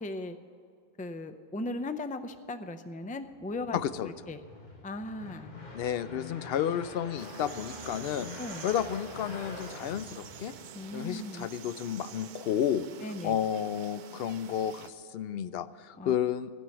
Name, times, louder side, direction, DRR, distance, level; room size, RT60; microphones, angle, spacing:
voice 1, 0.0-0.4 1.0-3.8 4.0-4.4 4.8-5.5 8.4-8.7 10.7-11.5 13.0-13.4 16.0-16.1, left 2 dB, 10° left, 10 dB, 0.4 m, -37 dB
sound 1, 3.3-10.9, left 2 dB, 55° left, 1.7 m, -45 dB
voice 2, 3.7-4.1 5.7-8.3 8.6-10.5 10.9-12.9 13.2-16.5, left 9 dB, 75° left, 15 dB, 0.8 m, -31 dB
sound 2, 7.2-14.9, right 8 dB, 60° right, 0.6 m, -48 dB
16.0 x 5.5 x 9.9 m, 2.3 s
omnidirectional pair, 1.0 m